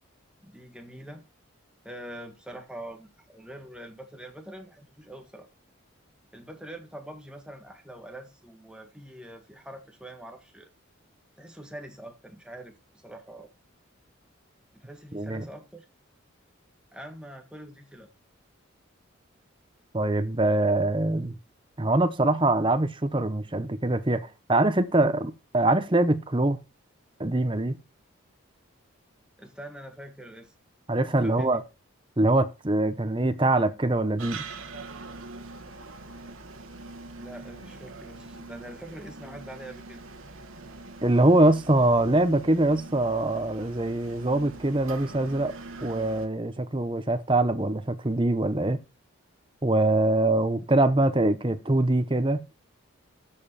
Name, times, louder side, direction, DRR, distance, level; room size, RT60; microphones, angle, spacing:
voice 1, 0.4-1.2 1.8-5.5 6.3-10.7 11.4-13.5 14.7-15.9 16.9-18.1 29.4-30.5 31.2-31.6 37.2-40.0, right 1 dB, 5° right, 1.6 m, -44 dB
voice 2, 15.1-15.5 19.9-21.3 21.8-24.2 24.5-26.6 27.2-27.8 30.9-31.6 32.2-34.4 41.0-45.5 45.8-48.8 49.6-52.4, right 2 dB, 25° right, 0.9 m, -23 dB
sound 1, 34.2-46.3, right 3 dB, 80° right, 1.4 m, -43 dB
13.5 x 5.5 x 4.2 m
head